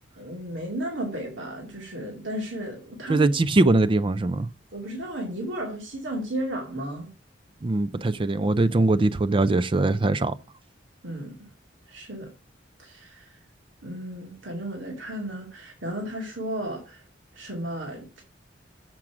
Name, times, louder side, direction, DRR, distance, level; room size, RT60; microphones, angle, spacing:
voice 1, 0.2-3.3 4.7-7.1 11.0-11.4 11.9-12.3 12.8-13.4 13.8-17.0 17.3-18.2, right 1 dB, 90° right, 2.4 m, -34 dB
voice 2, 3.1-4.5 7.6-10.3, right 2 dB, 30° right, 0.4 m, -21 dB
7.4 x 6.0 x 4.9 m
head